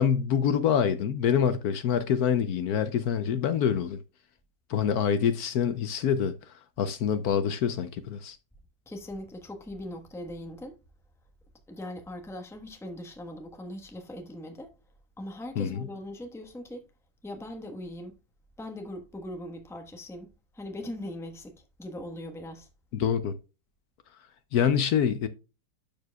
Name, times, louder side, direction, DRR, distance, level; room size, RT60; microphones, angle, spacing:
voice 1, 0.0-4.0 4.7-8.4 15.6-15.9 22.9-23.3 24.5-25.3, left 8 dB, 70° left, 1.0 m, -26 dB
voice 2, 8.9-10.8 11.7-14.7 15.2-16.9 17.2-18.2 18.6-20.3 20.5-22.7, left 1 dB, ahead, 0.8 m, -40 dB
12.5 x 4.8 x 2.3 m
omnidirectional pair, 1.9 m